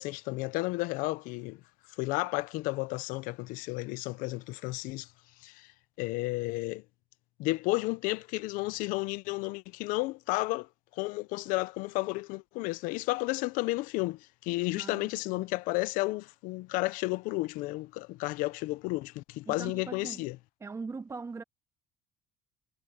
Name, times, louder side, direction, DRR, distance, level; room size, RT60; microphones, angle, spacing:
voice 1, 0.0-1.6 2.0-5.1 5.4-5.7 6.0-6.8 7.4-20.4, left 21 dB, 85° left, 0.5 m, -32 dB
voice 2, 14.7-15.4 19.5-20.2 20.6-21.4, right 4 dB, 20° right, 1.5 m, -41 dB
cardioid pair, 140°, 14 cm